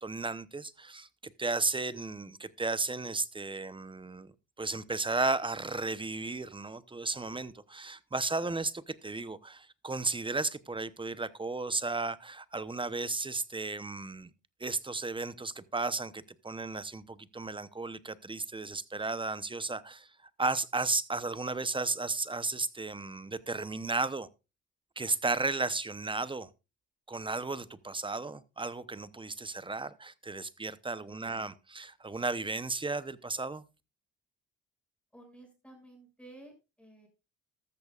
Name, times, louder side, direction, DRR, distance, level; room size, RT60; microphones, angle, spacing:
voice 1, 0.0-4.3 4.6-14.3 14.6-20.1 20.4-24.3 25.0-26.5 27.1-33.6, right 3 dB, 15° right, 0.8 m, -34 dB
voice 2, 35.1-36.5 36.8-37.1, right 1 dB, 5° left, 6.6 m, -53 dB
13.5 x 13.5 x 2.4 m
cardioid pair, 90°, 30 cm